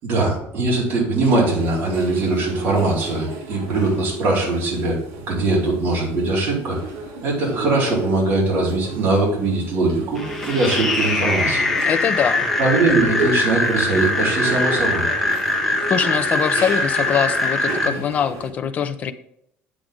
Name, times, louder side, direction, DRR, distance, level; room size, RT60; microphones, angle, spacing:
voice 1, 0.0-5.0 5.3-6.8 7.2-11.6 12.6-15.0, right 2 dB, 45° right, -4 dB, 4.3 m, -21 dB
sound 1, 1.2-18.5, right 3 dB, 90° right, 3.5 m, -33 dB
sound 2, 10.2-17.9, left 2 dB, 5° left, 1.4 m, -22 dB
voice 2, 11.8-12.4 15.9-19.1, left 8 dB, 30° left, 9 dB, 0.7 m, -22 dB
8.9 x 8.4 x 3.8 m, 0.75 s
cardioid pair, 180°, 5 cm